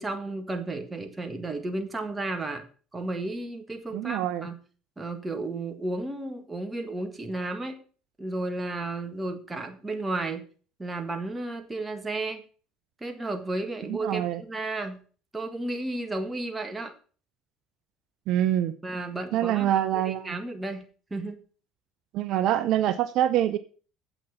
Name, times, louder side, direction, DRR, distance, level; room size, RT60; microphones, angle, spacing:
voice 1, 0.0-2.7 2.9-4.6 5.0-7.8 8.2-10.4 10.8-12.4 13.0-15.0 15.3-16.9 18.8-19.7 20.1-20.8 21.1-21.4, right 2 dB, 15° right, 6 dB, 1.8 m, -33 dB
voice 2, 3.9-4.5 13.9-14.4 18.3-18.8 19.3-20.4 22.1-23.6, right 11 dB, 65° right, 12 dB, 0.6 m, -25 dB
8.0 x 6.0 x 7.2 m, 0.39 s
supercardioid pair, 95°, 0 cm